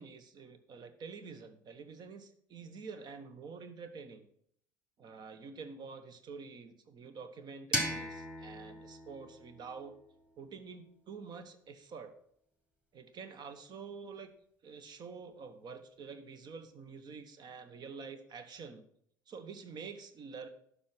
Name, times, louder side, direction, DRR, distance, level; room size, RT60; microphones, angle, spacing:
voice 1, 0.0-4.3 5.0-9.9 10.4-12.1 12.9-14.3 14.6-18.9 19.3-20.5, right 5 dB, 40° right, 10 dB, 1.2 m, -47 dB
sound 1, 7.7-10.6, equal, 10° right, 2.0 m, -39 dB
11.5 x 5.0 x 5.9 m, 0.68 s
figure-of-eight pair, 55°, 11 cm